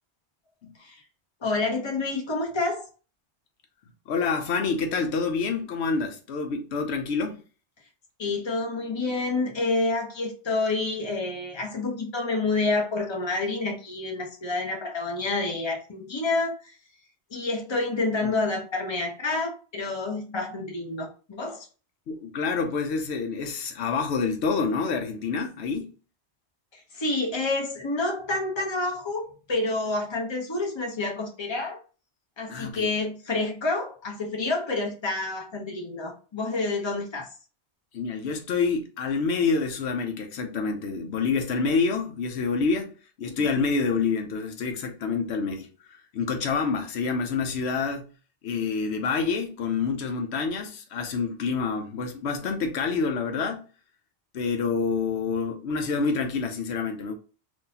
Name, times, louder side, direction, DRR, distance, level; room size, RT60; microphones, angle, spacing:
voice 1, 1.4-2.8 8.2-16.8 17.3-21.7 26.7-31.8 32.4-37.3 43.2-43.4, left 3 dB, 25° left, 0.8 m, -28 dB
voice 2, 4.1-7.4 22.1-25.9 32.5-32.9 37.9-42.9 43.2-48.1 48.4-53.7 54.3-57.1, left 5 dB, 80° left, 0.9 m, -27 dB
3.8 x 2.6 x 2.7 m
omnidirectional pair, 1.1 m